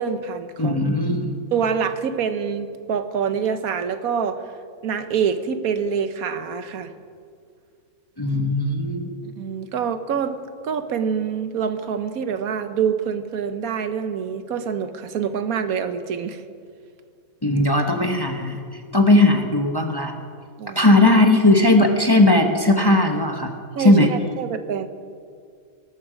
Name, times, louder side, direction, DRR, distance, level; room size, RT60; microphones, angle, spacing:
voice 1, 0.0-0.8 1.5-4.4 4.8-6.9 9.2-16.4 20.6-20.9 23.8-24.9, right 7 dB, 80° right, 10 dB, 1.3 m, -26 dB
voice 2, 0.6-1.4 8.2-9.2 17.4-18.6 18.9-20.1 20.8-23.5 23.8-24.1, left 2 dB, 20° left, 4 dB, 0.9 m, -17 dB
18.5 x 13.0 x 5.0 m, 2.2 s
omnidirectional pair, 1.5 m